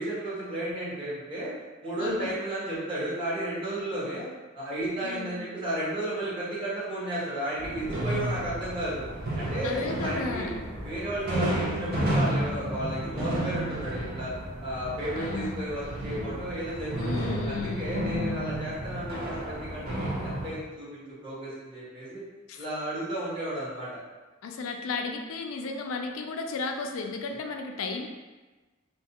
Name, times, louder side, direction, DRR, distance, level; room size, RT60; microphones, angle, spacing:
voice 1, 0.0-1.5 1.8-4.3 4.5-9.0 9.3-10.5 10.8-14.3 14.6-22.2 22.6-23.9, right 1 dB, 25° right, -10 dB, 1.0 m, -33 dB
voice 2, 2.0-2.3 5.0-5.3 9.6-10.6 15.2-15.7 17.0-18.0 22.5-22.6 24.4-28.1, left 4 dB, 75° left, 4 dB, 0.3 m, -34 dB
sound 1, 7.6-20.5, right 1 dB, 50° right, 0.6 m, -32 dB
2.4 x 2.2 x 2.8 m, 1.2 s
head